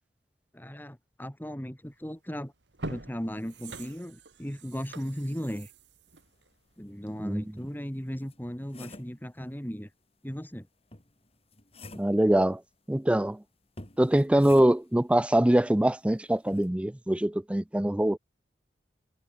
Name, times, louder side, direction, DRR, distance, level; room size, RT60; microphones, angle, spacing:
voice 1, 0.5-2.5 2.9-5.7 6.8-9.9 10.2-10.7, equal, 10° left, 2.8 m, -37 dB
sound 1, 2.0-2.2 2.6-7.3 7.7-7.8, right 2 dB, 85° right, 2.7 m, -44 dB
sound 2, 6.9-7.0 7.6-9.2 10.9-12.2 13.8-15.0 16.5-16.7, left 2 dB, 35° left, 5.8 m, -48 dB
voice 2, 12.0-12.6 12.9-13.4 14.0-18.2, right 1 dB, 5° right, 0.4 m, -23 dB
head